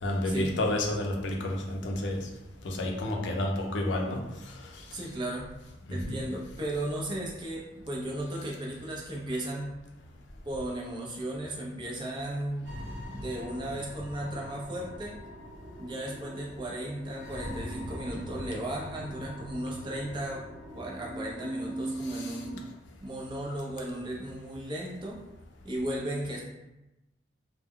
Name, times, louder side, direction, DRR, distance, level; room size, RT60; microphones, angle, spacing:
voice 1, 0.0-2.3 2.6-4.2 5.9-6.2 22.0-22.4, left 1 dB, 70° left, 0 dB, 0.5 m, -30 dB
voice 2, 4.9-5.5 5.9-9.7 10.4-12.7 13.1-15.1 15.8-20.4 20.7-22.6 23.0-25.2 25.6-26.4, right 1 dB, 25° right, -3 dB, 0.4 m, -35 dB
sound 1, 12.6-22.7, right 1 dB, 60° right, 0.7 m, -41 dB
2.1 x 2.0 x 3.5 m, 0.98 s
head